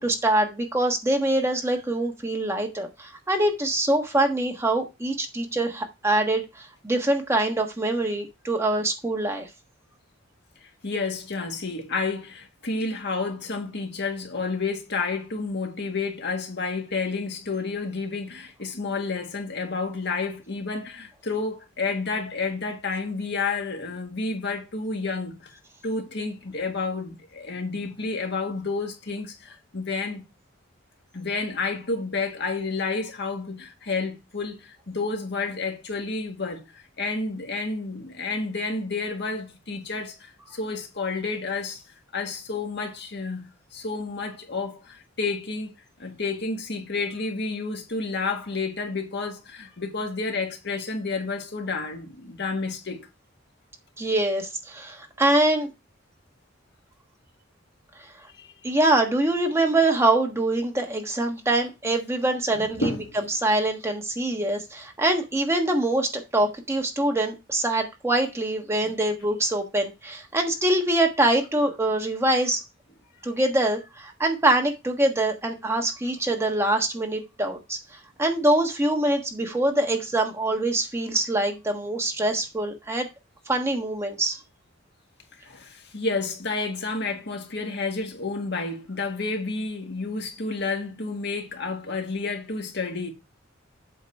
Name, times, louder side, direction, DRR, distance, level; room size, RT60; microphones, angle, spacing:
voice 1, 0.0-9.5 54.0-55.7 58.6-62.9 63.3-72.6 73.2-77.8 78.2-83.1 83.5-84.4, right 1 dB, 15° right, 1.3 m, -24 dB
voice 2, 10.8-30.2 31.1-41.8 42.1-45.7 46.0-53.1 58.3-58.8 62.8-63.0 68.8-68.9 85.4-93.1, left 3 dB, 60° left, 1.7 m, -30 dB
8.2 x 3.9 x 5.4 m
head